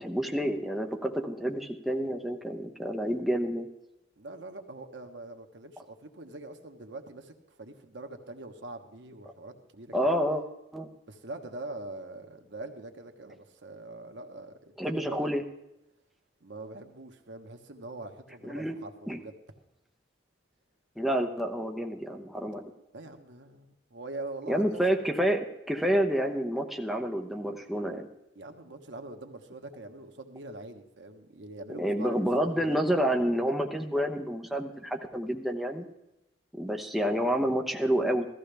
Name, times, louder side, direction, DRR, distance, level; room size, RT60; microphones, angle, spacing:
voice 1, 0.0-3.7 9.9-10.4 10.7-10.9 14.8-15.4 18.4-18.7 19.1-19.2 21.0-22.6 24.5-28.1 31.7-35.9 36.5-38.3, equal, ahead, 2 dB, 0.8 m, -29 dB
voice 2, 4.2-10.2 11.1-15.3 16.4-19.3 22.9-24.8 28.3-32.7, right 2 dB, 75° right, 5 dB, 1.2 m, -43 dB
15.5 x 13.5 x 3.4 m, 0.86 s
head